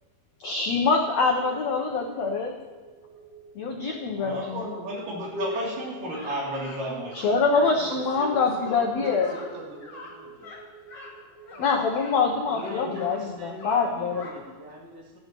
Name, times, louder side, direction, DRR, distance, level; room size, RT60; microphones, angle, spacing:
voice 1, 0.4-2.5 3.5-4.7 7.1-9.3 11.6-14.3, left 4 dB, 80° left, 1 dB, 1.5 m, -25 dB
sound 1, 1.3-13.3, right 4 dB, 35° right, 2.8 m, -50 dB
voice 2, 4.2-7.2, equal, 65° right, -5 dB, 4.5 m, -32 dB
sound 2, 5.5-5.7 6.1-6.8 7.1-7.7 8.1-8.3 8.6-8.8 9.2-9.5 9.8-10.1 10.4-10.6 10.9-11.1 11.4-12.1 12.5-13.2 13.6-14.3, left 2 dB, 30° left, 2.9 m, -44 dB
voice 3, 7.6-10.6, right 2 dB, 85° right, 0 dB, 3.7 m, -40 dB
voice 4, 11.5-11.9 12.5-15.2, left 2 dB, 10° left, -6 dB, 1.1 m, -40 dB
15.5 x 12.5 x 3.0 m, 1.3 s
omnidirectional pair, 4.2 m